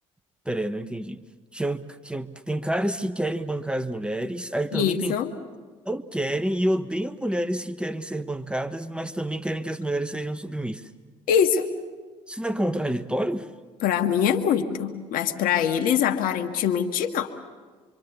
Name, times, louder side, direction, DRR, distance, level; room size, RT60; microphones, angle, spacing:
voice 1, 0.5-1.2 1.5-5.1 5.9-10.9 12.3-13.5, right 1 dB, 5° right, 1.1 m, -28 dB
voice 2, 4.7-5.3 11.3-11.7 13.8-17.3, left 8 dB, 65° left, 1.7 m, -23 dB
25.5 x 25.5 x 7.0 m
hypercardioid pair, 55°, 16 cm